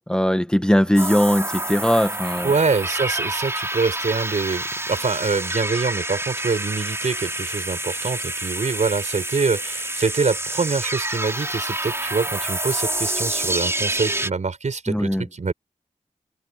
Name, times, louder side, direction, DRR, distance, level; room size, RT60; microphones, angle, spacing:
voice 1, 0.1-2.5 14.9-15.2, equal, 5° left, 1.4 m, -19 dB
sound 1, 1.0-14.3, right 1 dB, 20° right, 4.1 m, -28 dB
voice 2, 2.4-15.5, right 4 dB, 60° right, 4.9 m, -25 dB
cardioid pair, 60°, 14 cm